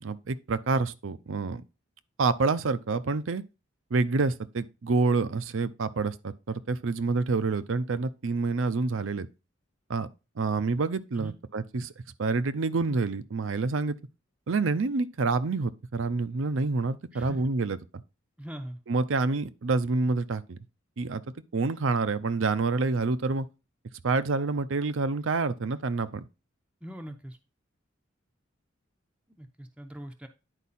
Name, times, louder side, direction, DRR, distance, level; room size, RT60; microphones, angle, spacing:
voice 1, 0.0-1.6 2.2-3.4 3.9-9.3 9.9-10.1 10.4-11.9 12.2-14.0 14.5-17.8 18.9-20.6 21.0-21.2 21.5-23.5 24.0-26.2, right 3 dB, 70° right, 0.6 m, -27 dB
voice 2, 17.1-17.4 18.4-18.8 26.8-27.4 29.3-30.3, equal, 5° right, 0.6 m, -41 dB
9.9 x 4.7 x 4.2 m
head